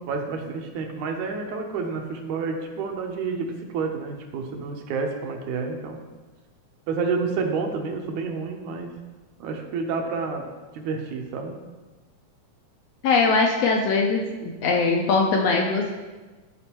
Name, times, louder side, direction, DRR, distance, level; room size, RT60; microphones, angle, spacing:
voice 1, 0.1-6.0 6.9-9.0 9.4-11.6, right 4 dB, 75° right, 3 dB, 2.1 m, -29 dB
voice 2, 13.0-15.9, left 4 dB, 75° left, 1 dB, 1.6 m, -21 dB
12.5 x 4.4 x 2.9 m, 1.2 s
omnidirectional pair, 3.4 m